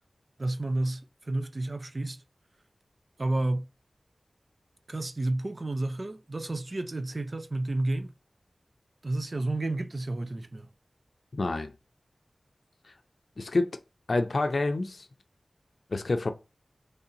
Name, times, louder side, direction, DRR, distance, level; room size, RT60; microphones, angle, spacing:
voice 1, 0.4-2.2 3.2-3.7 4.9-8.1 9.0-10.7, right 2 dB, 45° right, 0.4 m, -31 dB
voice 2, 11.3-11.7 12.8-12.9 13.4-13.8 14.1-15.1 15.9-16.3, left 2 dB, 65° left, 0.5 m, -28 dB
3.2 x 2.8 x 3.8 m
wide cardioid pair, 80°, 0 cm